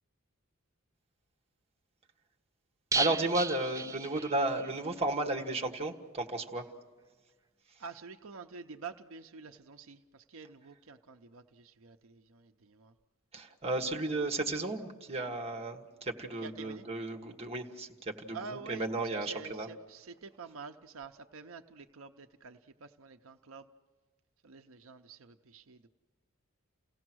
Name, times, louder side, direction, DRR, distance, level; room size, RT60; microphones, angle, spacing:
sound 1, 2.9-4.7 5.0-5.1 5.4-5.5, right 4 dB, 15° right, 0.7 m, -34 dB
voice 1, 2.9-6.7 13.3-19.7, right 2 dB, 30° right, 3 dB, 1.7 m, -34 dB
voice 2, 7.8-12.9 16.4-16.8 18.3-23.7 24.4-25.9, right 5 dB, 75° right, 6 dB, 0.7 m, -48 dB
30.0 x 17.0 x 6.2 m, 1.5 s
head